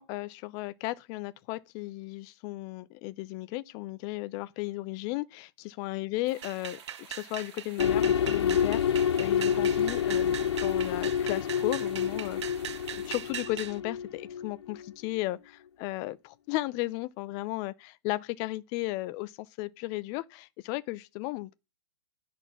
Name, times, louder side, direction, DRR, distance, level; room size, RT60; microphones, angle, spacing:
voice 1, 0.0-6.8 7.1-12.6 12.9-21.6, left 19 dB, 25° left, 0.4 m, -35 dB
sound 1, 6.2-13.3, right 6 dB, 35° right, 2.8 m, -53 dB
sound 2, 6.4-13.8, right 9 dB, 80° right, 0.5 m, -40 dB
sound 3, 7.8-14.9, left 8 dB, 70° left, 0.6 m, -28 dB
9.9 x 4.2 x 5.7 m
hypercardioid pair, 150°, 15 cm